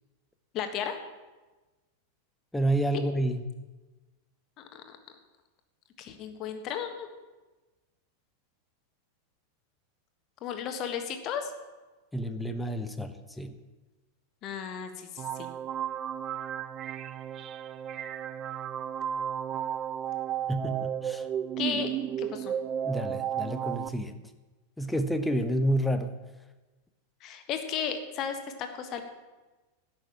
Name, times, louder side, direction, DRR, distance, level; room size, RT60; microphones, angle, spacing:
voice 1, 0.5-1.0 4.6-5.0 6.0-7.1 10.4-11.5 14.4-15.5 21.6-21.9 22.2-22.5 27.2-29.0, left 8 dB, 35° left, 7 dB, 1.5 m, -34 dB
voice 2, 2.5-3.4 12.1-13.5 20.5-21.2 22.8-24.1 24.8-26.1, right 1 dB, 5° left, 8 dB, 0.9 m, -29 dB
sound 1, 15.2-23.9, right 9 dB, 30° right, 0.4 m, -33 dB
11.0 x 6.4 x 8.9 m, 1.2 s
figure-of-eight pair, 90°, 0 cm